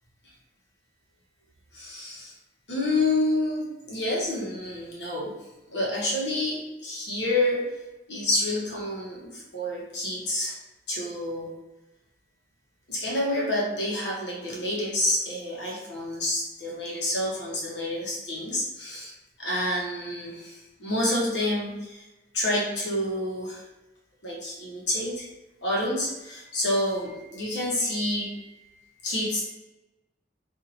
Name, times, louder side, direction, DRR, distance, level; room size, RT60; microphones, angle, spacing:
voice 1, 1.7-2.3 2.7-5.3 5.7-7.7 8.1-10.6 10.9-11.5 12.9-22.1 22.3-23.6 24.2-25.3 25.6-29.5, left 1 dB, 75° left, -4 dB, 1.1 m, -28 dB
2.8 x 2.7 x 4.0 m, 1.1 s
head